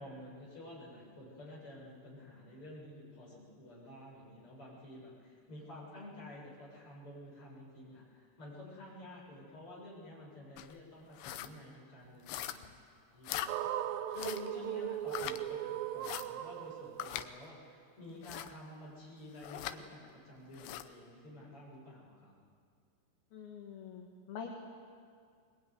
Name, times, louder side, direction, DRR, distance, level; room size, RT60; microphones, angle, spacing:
voice 1, 0.0-12.6 13.1-13.7 14.1-22.3, left 1 dB, 30° left, -4 dB, 8.0 m, -50 dB
sound 1, 10.6-10.7 11.1-11.5 12.3-12.8 13.2-13.5 14.1-14.5 15.1-15.4 16.0-16.3 17.0-17.3 18.2-18.5 19.4-19.8 20.5-20.9, left 13 dB, 80° left, 2.9 m, -41 dB
sound 2, 13.5-17.7, right 12 dB, 85° right, 2.0 m, -38 dB
voice 2, 23.3-24.5, left 7 dB, 65° left, 1 dB, 3.4 m, -45 dB
22.0 x 21.5 x 9.6 m, 2.2 s
omnidirectional pair, 5.1 m